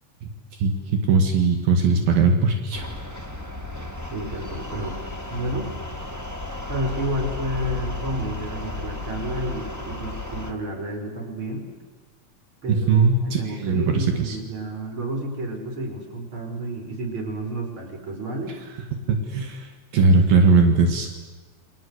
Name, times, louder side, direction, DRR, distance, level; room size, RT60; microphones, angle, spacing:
voice 1, 0.6-2.8 12.7-14.4 19.1-21.2, right 4 dB, 75° right, 4 dB, 3.8 m, -20 dB
sound 1, 2.7-10.5, left 2 dB, 5° right, 1.6 m, -33 dB
voice 2, 4.1-5.0 5.3-5.7 6.7-11.7 12.6-18.6, right 1 dB, 35° right, 3 dB, 5.3 m, -30 dB
29.5 x 23.0 x 8.2 m, 1.3 s
omnidirectional pair, 4.1 m